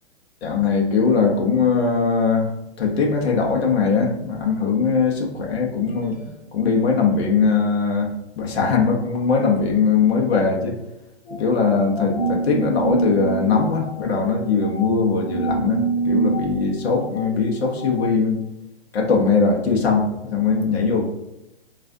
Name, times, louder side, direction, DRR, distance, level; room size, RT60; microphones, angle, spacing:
voice 1, 0.4-10.8 11.3-18.4 18.9-21.1, left 5 dB, 65° left, 1 dB, 0.9 m, -20 dB
sound 1, 11.3-18.1, right 4 dB, 35° left, 0.9 m, -27 dB
5.5 x 2.5 x 2.6 m, 0.89 s
hypercardioid pair, 180°, 34 cm